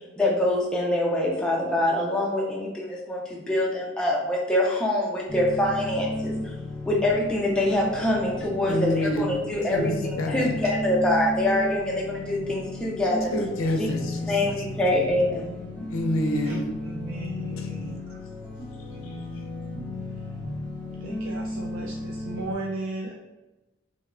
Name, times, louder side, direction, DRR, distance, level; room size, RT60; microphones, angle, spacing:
voice 1, 0.2-6.5 6.9-13.3 13.8-13.9 14.3-15.6, left 1 dB, 5° left, -3 dB, 0.3 m, -25 dB
sound 1, 5.3-22.5, left 1 dB, 40° left, 0.8 m, -34 dB
voice 2, 8.7-9.4 9.7-10.5 13.3-14.4 15.8-16.8 17.6-17.7 19.0-19.2, left 1 dB, 75° left, 2 dB, 0.4 m, -28 dB
voice 3, 16.8-18.0 18.9-19.4 21.0-23.1, right 2 dB, 70° right, -2 dB, 0.4 m, -36 dB
2.9 x 2.0 x 2.4 m, 1.0 s
head